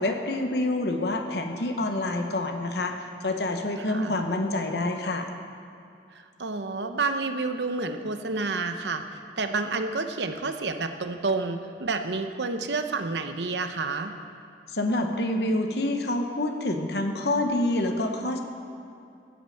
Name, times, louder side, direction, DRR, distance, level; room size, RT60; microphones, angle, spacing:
voice 1, 0.0-2.9 3.2-5.3 14.7-18.4, left 1 dB, 60° left, 4 dB, 1.0 m, -27 dB
voice 2, 3.8-4.2 6.4-14.1, right 3 dB, 70° right, 7 dB, 0.8 m, -29 dB
14.5 x 6.6 x 7.8 m, 2.5 s
head